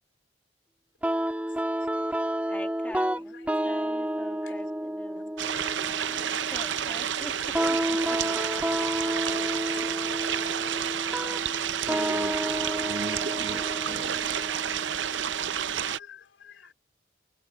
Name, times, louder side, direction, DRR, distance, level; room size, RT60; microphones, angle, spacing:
sound 1, 1.0-16.0, right 1 dB, 10° right, 1.7 m, -31 dB
voice 1, 1.1-2.8 3.1-3.5 4.4-4.7 5.1-5.2 5.5-7.6 9.1-11.0 12.2-13.0 15.5-16.7, left 6 dB, 75° left, 4.0 m, -54 dB
voice 2, 2.5-3.2 3.7-4.7 5.0-5.3 6.5-7.3 7.6-8.2, left 1 dB, 10° left, 2.0 m, -43 dB
sound 2, 5.4-16.0, right 9 dB, 75° right, 0.6 m, -30 dB
voice 3, 11.9-14.2, right 2 dB, 50° right, 1.0 m, -41 dB
head